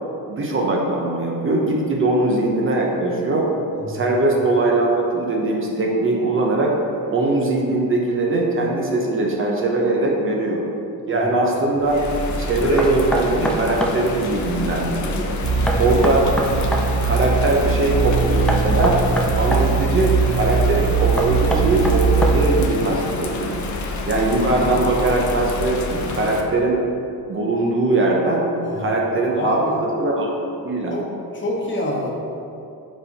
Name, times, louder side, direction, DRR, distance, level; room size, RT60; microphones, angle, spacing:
voice 1, 0.3-3.5 3.9-6.7 7.1-10.6 11.1-12.0 12.4-15.4 15.7-16.3 17.0-19.0 19.3-23.6 24.0-26.8 27.3-28.4 28.8-30.3 30.6-31.0, right 2 dB, 35° right, -1 dB, 0.9 m, -21 dB
Bird vocalization bird call bird song / Rain, 11.8-26.4, left 2 dB, 55° left, 0.7 m, -28 dB
Knock, 12.8-14.0 15.7-16.9 18.5-19.7 21.2-22.6, equal, 5° left, 0.5 m, -24 dB
sound 1, 15.4-22.7, right 5 dB, 70° right, 0.6 m, -21 dB
voice 2, 15.5-15.8 28.6-29.0 29.4-29.8 30.9-31.0 31.3-32.1, left 1 dB, 35° left, -3 dB, 1.2 m, -26 dB
5.3 x 5.1 x 4.2 m, 2.7 s
cardioid pair, 115°, 35 cm